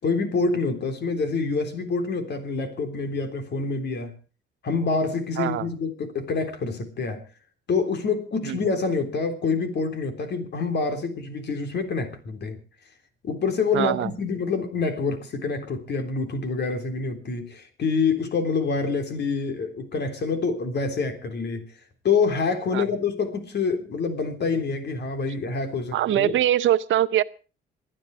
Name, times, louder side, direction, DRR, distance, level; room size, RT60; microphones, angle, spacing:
voice 1, 0.0-4.1 4.6-7.2 7.7-12.6 13.2-21.6 22.0-26.4, left 4 dB, 60° left, 7 dB, 3.6 m, -26 dB
voice 2, 5.4-5.7 8.4-8.6 13.7-14.1 22.7-22.9 25.9-27.2, right 12 dB, 75° right, 16 dB, 0.7 m, -22 dB
27.0 x 10.0 x 4.7 m, 0.36 s
cardioid pair, 90°, 20 cm